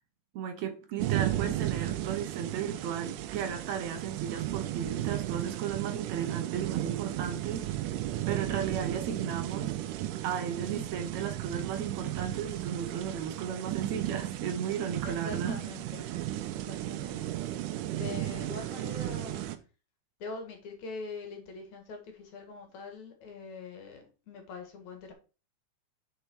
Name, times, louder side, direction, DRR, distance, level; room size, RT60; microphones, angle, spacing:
voice 1, 0.3-7.7 8.3-9.7 10.2-15.6 16.0-16.3, right 8 dB, 70° right, 2.1 m, -35 dB
sound 1, 1.0-19.6, right 14 dB, 90° right, 2.3 m, -34 dB
voice 2, 15.0-16.1 16.7-17.2 17.9-19.4 20.2-25.1, left 4 dB, 65° left, 3.0 m, -43 dB
6.8 x 6.4 x 4.6 m
omnidirectional pair, 3.6 m